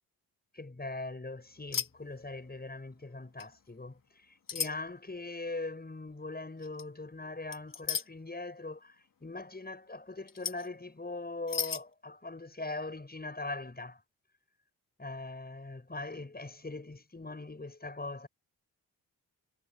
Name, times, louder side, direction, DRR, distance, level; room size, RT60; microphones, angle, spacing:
voice 1, 0.5-14.0 15.0-18.3, left 2 dB, 25° left, 7.0 m, -41 dB
sound 1, 1.7-1.9 2.2-2.5 3.4-3.5 4.5-4.7 6.6-6.8 7.5-8.1 10.3-10.7 11.5-11.8, left 6 dB, 55° left, 2.3 m, -34 dB
supercardioid pair, 50°, 40 cm